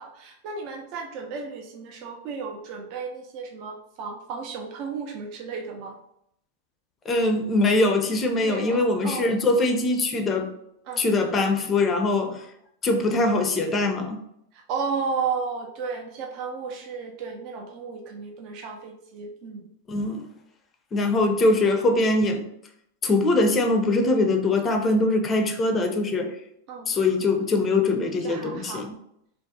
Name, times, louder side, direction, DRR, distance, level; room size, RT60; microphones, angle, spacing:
voice 1, 0.0-6.0 8.4-9.3 10.9-11.3 14.5-19.7 21.9-22.0 26.7-26.9 28.2-28.9, right 5 dB, 50° right, 2 dB, 0.4 m, -33 dB
voice 2, 7.1-10.5 11.0-12.5 12.8-14.2 19.9-20.2 20.9-22.4 23.0-26.3 26.9-28.9, left 2 dB, 25° left, 5 dB, 0.4 m, -22 dB
2.4 x 2.0 x 2.6 m, 0.75 s
hypercardioid pair, 100°, 0 cm